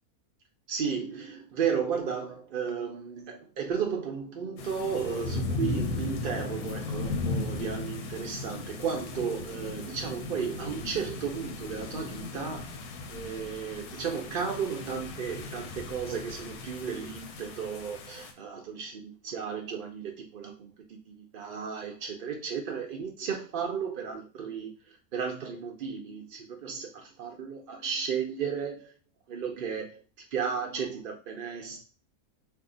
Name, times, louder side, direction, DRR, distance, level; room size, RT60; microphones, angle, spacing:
voice 1, 0.7-20.7 21.1-28.9 29.3-30.0 30.3-31.8, right 6 dB, 65° right, 0.5 m, -34 dB
sound 1, 4.6-18.3, left 3 dB, 90° left, 1.1 m, -36 dB
2.7 x 2.4 x 3.7 m
omnidirectional pair, 1.5 m